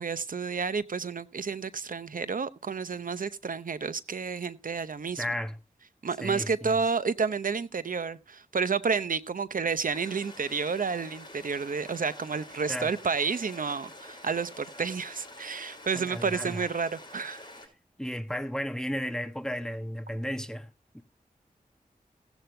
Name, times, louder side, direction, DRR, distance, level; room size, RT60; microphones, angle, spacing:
voice 1, 0.0-5.2 6.0-17.4, right 5 dB, 70° right, 0.8 m, -30 dB
voice 2, 5.2-5.6 6.2-6.8 12.7-12.9 15.9-16.6 18.0-20.7 20.9-21.0, equal, 5° left, 1.2 m, -34 dB
sound 1, 9.9-17.7, left 1 dB, 30° left, 5.8 m, -47 dB
16.5 x 8.1 x 3.3 m
cardioid pair, 50°, 15 cm